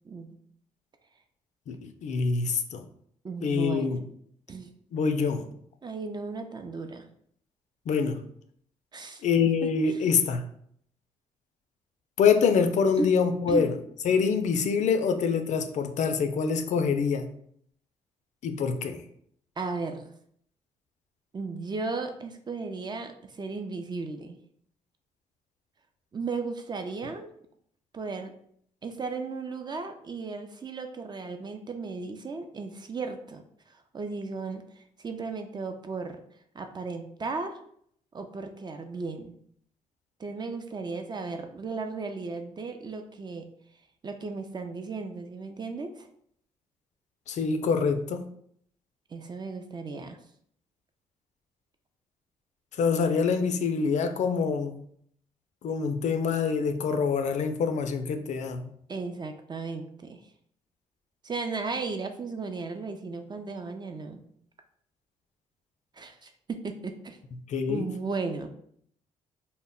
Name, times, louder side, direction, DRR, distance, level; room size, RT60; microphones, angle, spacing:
voice 1, 0.1-0.4 3.2-4.0 4.5-4.7 5.8-7.1 8.9-9.2 13.0-13.1 13.5-13.7 19.6-20.1 21.3-24.4 26.1-27.3 27.9-28.3 28.8-33.4 33.9-36.2 36.5-37.6 38.1-39.3 40.2-43.5 44.0-46.1 49.1-50.2 58.9-60.2 61.2-64.2 65.9-67.2 67.7-68.5, right 4 dB, 30° right, 6 dB, 0.4 m, -35 dB
voice 2, 1.7-2.8 3.4-4.0 4.9-5.4 7.9-8.2 9.2-10.4 12.2-13.7 14.0-17.3 18.4-19.0 47.3-48.2 52.8-54.8 55.6-58.7 67.5-67.9, left 5 dB, 60° left, 7 dB, 0.4 m, -25 dB
2.1 x 2.0 x 3.6 m, 0.65 s
supercardioid pair, 65°, 14 cm